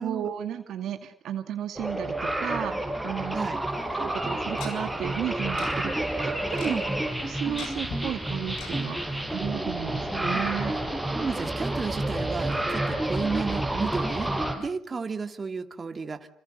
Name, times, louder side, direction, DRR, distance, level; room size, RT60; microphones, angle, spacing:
voice 1, 0.0-3.4 4.0-6.8 7.2-10.7, right 10 dB, 75° right, 7 dB, 2.2 m, -34 dB
sound 1, 1.8-14.5, right 1 dB, ahead, 6.5 m, -29 dB
Tick-tock, 3.7-3.8 4.6-4.7 5.6-5.7 6.0-6.1 6.3-6.7 7.6-8.0 8.6-8.7 9.1-9.2 9.5-9.6, left 6 dB, 85° left, 7.3 m, -39 dB
voice 2, 6.5-6.9 11.1-14.3 14.6-16.3, right 5 dB, 35° right, 6 dB, 2.7 m, -32 dB
29.0 x 26.5 x 6.7 m, 0.62 s
cardioid pair, 90°, 0 cm